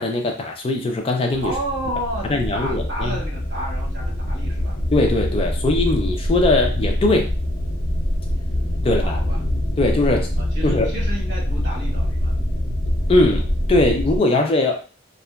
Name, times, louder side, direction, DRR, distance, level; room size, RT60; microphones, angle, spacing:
voice 1, 0.0-1.5 2.3-3.2 4.9-7.3 8.8-9.2 9.8-10.3 10.6-10.9 13.1-14.7, left 2 dB, 30° left, 2 dB, 0.4 m, -20 dB
sound 1, 1.3-14.2, equal, 60° left, 0.7 m, -24 dB
voice 2, 1.4-4.8 8.9-9.4 10.3-12.4, equal, 65° right, -2 dB, 1.1 m, -31 dB
2.8 x 2.4 x 2.2 m, 0.35 s
head